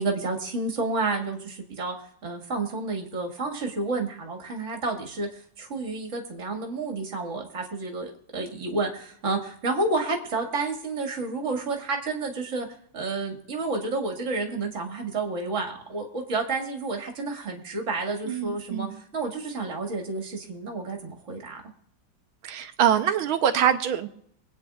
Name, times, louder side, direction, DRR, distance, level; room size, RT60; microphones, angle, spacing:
voice 1, 0.0-1.9 2.2-12.7 12.9-18.9 19.1-21.6, right 3 dB, 35° right, 1 dB, 2.1 m, -30 dB
voice 2, 18.3-18.9 22.4-24.1, right 9 dB, 75° right, 9 dB, 1.7 m, -24 dB
25.0 x 9.2 x 2.4 m, 0.68 s
omnidirectional pair, 2.3 m